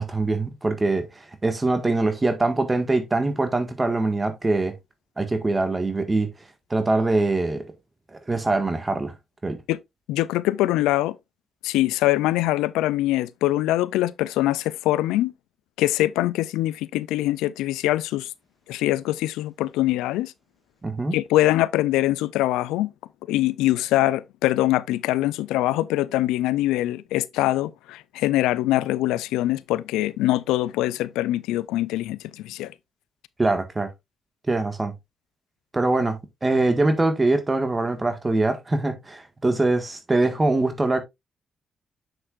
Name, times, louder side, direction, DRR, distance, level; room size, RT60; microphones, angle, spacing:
voice 1, 0.0-4.7 5.2-6.3 6.7-7.7 8.1-9.1 9.4-9.6 20.8-21.2 33.4-33.9 34.5-34.9 35.7-41.0, right 2 dB, 30° right, 1.6 m, -23 dB
voice 2, 10.1-11.2 11.6-15.3 15.8-18.3 18.7-20.3 21.1-22.9 23.3-32.7, left 16 dB, 90° left, 0.4 m, -23 dB
7.8 x 6.4 x 2.5 m
supercardioid pair, 50°, 0 cm